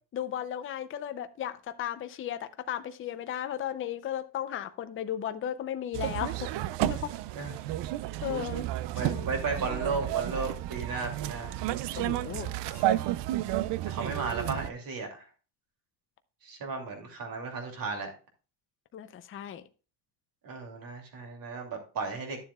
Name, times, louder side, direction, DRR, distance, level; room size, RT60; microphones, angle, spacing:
voice 1, 0.1-6.5 6.8-7.1 8.2-8.7 9.0-9.3 12.0-12.9 18.9-19.6, left 10 dB, 30° left, 10 dB, 0.5 m, -35 dB
sound 1, 5.9-14.7, right 14 dB, 70° right, 0.6 m, -32 dB
voice 2, 8.9-11.5 13.8-15.2 16.4-18.1 20.4-22.4, right 4 dB, 50° right, 2 dB, 2.6 m, -34 dB
12.0 x 7.1 x 2.3 m, 0.35 s
cardioid pair, 155°, 45 cm